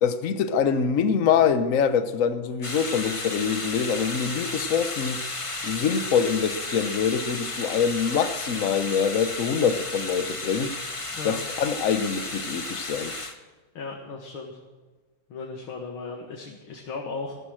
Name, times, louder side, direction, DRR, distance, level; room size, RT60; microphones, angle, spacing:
voice 1, 0.0-5.2 5.6-10.7 11.2-13.1, left 7 dB, 50° left, 1.1 m, -24 dB
sound 1, 2.6-13.3, left 2 dB, 20° left, 1.1 m, -33 dB
voice 2, 13.7-14.6 15.3-17.4, left 4 dB, 80° left, 2.6 m, -36 dB
14.5 x 13.5 x 6.4 m
omnidirectional pair, 2.2 m